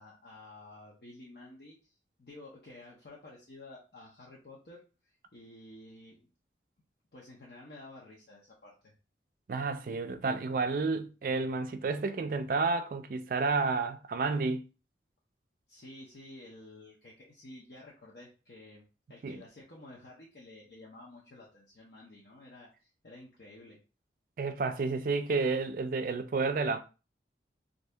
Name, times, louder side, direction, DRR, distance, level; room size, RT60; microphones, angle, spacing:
voice 1, 0.0-1.9 2.2-6.2 7.1-8.9 15.7-18.8 19.1-23.8, left 2 dB, 60° left, 0.7 m, -51 dB
voice 2, 9.5-14.6 19.2-19.4 24.4-26.8, right 4 dB, 50° right, 0.3 m, -31 dB
2.7 x 2.6 x 3.3 m
head